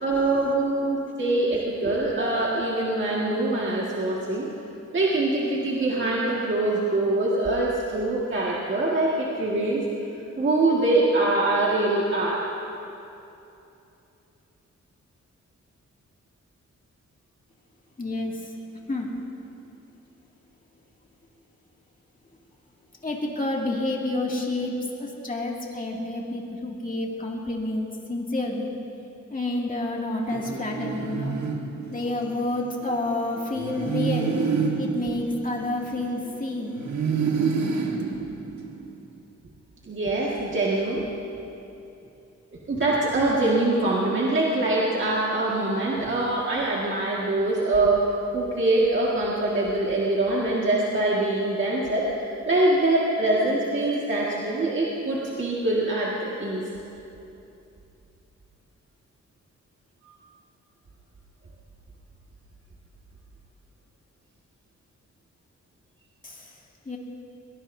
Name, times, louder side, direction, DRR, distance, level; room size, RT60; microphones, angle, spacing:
voice 1, 0.0-4.5 4.9-9.8 10.4-12.4 39.9-41.0 42.7-56.7, right 2 dB, 40° right, -5 dB, 1.9 m, -24 dB
voice 2, 18.0-18.5 18.9-19.1 23.0-24.7 25.0-28.7 29.3-31.4 31.9-36.8 66.2-66.5 66.9-67.0, left 2 dB, 25° left, -2 dB, 2.4 m, -29 dB
sound 1, 30.3-32.4 33.5-36.3 36.8-39.0, right 5 dB, 70° right, 1.6 m, -28 dB
22.0 x 20.0 x 2.7 m, 2.8 s
wide cardioid pair, 110°, 30 cm